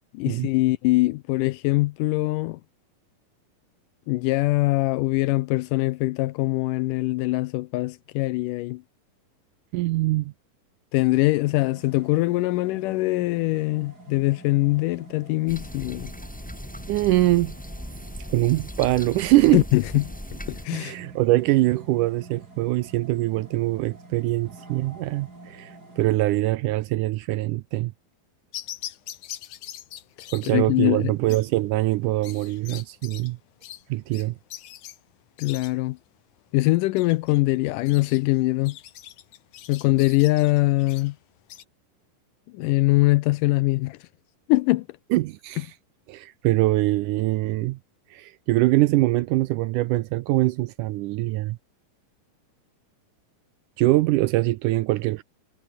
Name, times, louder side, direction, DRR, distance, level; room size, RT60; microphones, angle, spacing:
voice 1, 0.1-2.6 4.1-8.8 10.9-16.1 19.5-20.1 20.5-21.0 30.5-31.1 35.4-36.0 36.5-38.8 39.7-41.2 42.5-44.0 44.5-44.9, left 20 dB, 80° left, 2.0 m, -22 dB
voice 2, 9.7-10.3 16.9-17.5 18.3-19.6 20.7-27.9 30.3-33.4 33.9-34.4 45.1-45.7 46.1-47.8 48.1-51.6 53.8-55.2, right 18 dB, 80° right, 1.9 m, -23 dB
sound 1, 11.4-26.1, right 2 dB, 25° right, 7.0 m, -47 dB
sound 2, 15.5-20.7, equal, 5° left, 2.1 m, -38 dB
sound 3, 28.5-41.6, left 12 dB, 65° left, 2.6 m, -43 dB
omnidirectional pair, 4.1 m